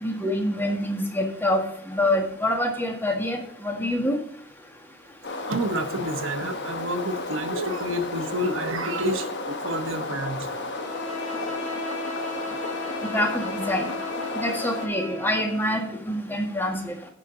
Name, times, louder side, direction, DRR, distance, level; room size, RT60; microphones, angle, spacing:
voice 1, 0.0-4.2 13.1-13.9 14.3-17.1, left 1 dB, 10° left, 2 dB, 1.6 m, -26 dB
sound 1, 5.2-14.9, left 2 dB, 55° left, 1.4 m, -33 dB
voice 2, 5.5-10.5, right 1 dB, 60° right, 7 dB, 1.2 m, -29 dB
Bowed string instrument, 10.7-15.9, left 2 dB, 75° left, 4.5 m, -36 dB
16.0 x 5.4 x 3.9 m, 0.64 s
head